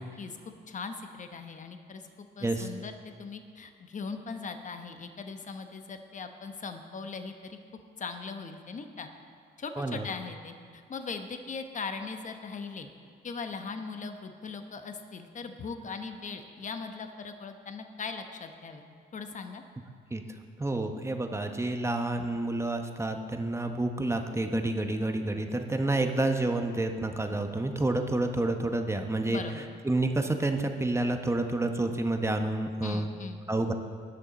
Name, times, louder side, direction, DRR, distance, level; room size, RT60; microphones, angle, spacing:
voice 1, 0.0-2.9 3.2-7.6 8.0-9.1 9.6-12.9 13.2-18.8 19.1-19.6 29.3-29.7 32.8-33.4, left 4 dB, 40° left, 6 dB, 1.0 m, -39 dB
voice 2, 20.6-29.4 29.8-33.1 33.5-33.7, right 2 dB, 15° right, 5 dB, 0.9 m, -29 dB
19.0 x 6.4 x 4.1 m, 2.1 s
cardioid pair, 90°, 20 cm